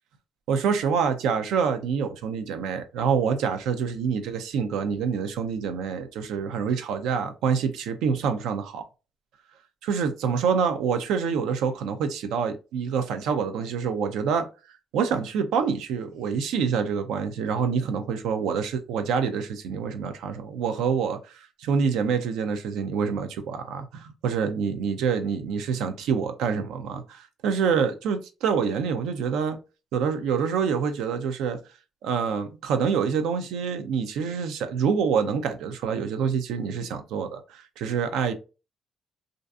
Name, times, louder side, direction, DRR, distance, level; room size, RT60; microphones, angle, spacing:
voice 1, 0.5-8.8 9.8-14.5 14.9-29.6 29.9-31.6 32.0-38.3, right 6 dB, 90° right, 0.4 m, -26 dB
2.5 x 2.4 x 2.3 m
cardioid pair, 90°, 0 cm